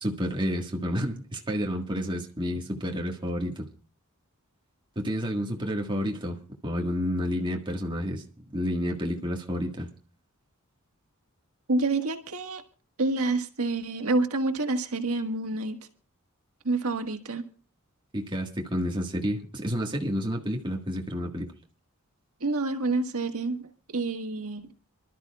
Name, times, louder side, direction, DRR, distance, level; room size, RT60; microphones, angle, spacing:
voice 1, 0.0-3.7 4.9-8.2 8.5-9.9 18.1-21.5, equal, 20° right, 1.7 m, -30 dB
voice 2, 11.7-12.6 13.0-15.8 16.6-17.4 22.4-24.7, right 2 dB, 85° right, 1.6 m, -28 dB
28.5 x 12.5 x 2.4 m
head